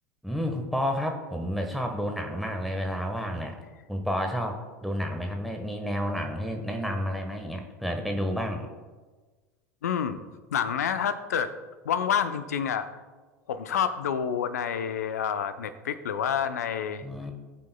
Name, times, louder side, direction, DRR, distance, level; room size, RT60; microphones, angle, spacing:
voice 1, 0.2-3.6 3.9-8.7 17.0-17.3, equal, ahead, 3 dB, 1.4 m, -30 dB
voice 2, 9.8-10.2 10.5-11.5 11.8-12.9 13.5-17.0, left 8 dB, 70° left, 11 dB, 0.7 m, -28 dB
20.0 x 7.5 x 2.3 m, 1.3 s
figure-of-eight pair, 80°, 9 cm